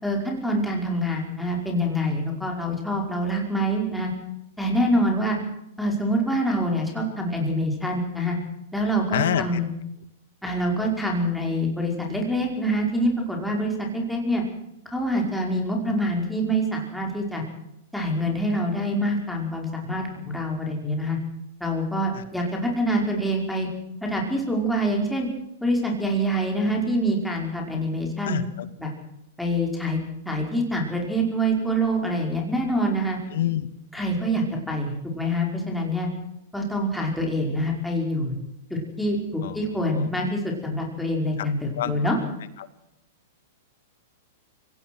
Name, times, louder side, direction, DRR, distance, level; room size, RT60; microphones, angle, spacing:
voice 1, 0.0-4.1 4.6-5.4 5.8-8.4 8.7-9.7 10.4-14.4 14.9-17.4 17.9-21.2 21.6-23.7 24.0-25.3 25.6-28.4 28.8-28.9 29.4-30.0 30.3-33.2 33.9-36.1 36.5-38.4 38.7-42.2, equal, ahead, -1 dB, 5.4 m, -25 dB
voice 2, 9.1-9.5 22.1-22.2 28.2-28.7 33.3-33.7 34.0-34.1 39.4-40.1 41.4-41.5 41.7-42.1 42.6-42.7, left 11 dB, 70° left, 12 dB, 2.1 m, -28 dB
24.0 x 18.0 x 6.4 m, 0.82 s
hypercardioid pair, 135°, 0 cm